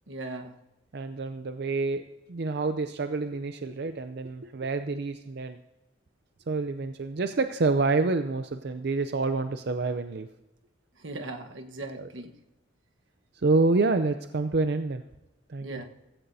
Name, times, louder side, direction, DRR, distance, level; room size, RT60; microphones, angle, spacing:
voice 1, 0.1-0.6 11.0-12.3 15.6-15.8, right 2 dB, 90° right, 4 dB, 1.3 m, -38 dB
voice 2, 0.9-5.6 6.5-10.3 12.0-12.1 13.3-15.0 15.5-15.8, right 3 dB, 60° right, 9 dB, 0.5 m, -28 dB
15.5 x 15.0 x 2.7 m, 0.97 s
head